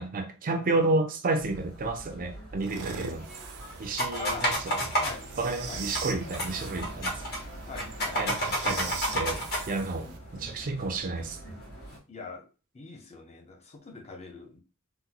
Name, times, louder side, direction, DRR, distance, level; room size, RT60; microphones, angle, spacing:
voice 1, 0.0-3.3 3.8-4.8 5.4-7.2 8.1-11.4, right 2 dB, 40° right, 0.4 m, -31 dB
sound 1, 1.4-12.0, right 1 dB, 70° left, 1.9 m, -44 dB
sound 2, 2.6-10.2, right 5 dB, 90° right, 0.6 m, -42 dB
sound 3, 4.0-5.1 6.0-6.1 6.3-6.5 6.8-7.4 7.8-9.6, equal, 45° left, 1.2 m, -28 dB
voice 2, 7.7-8.4 12.1-12.5 12.7-14.6, left 4 dB, 30° left, 0.6 m, -42 dB
3.8 x 2.1 x 2.8 m
head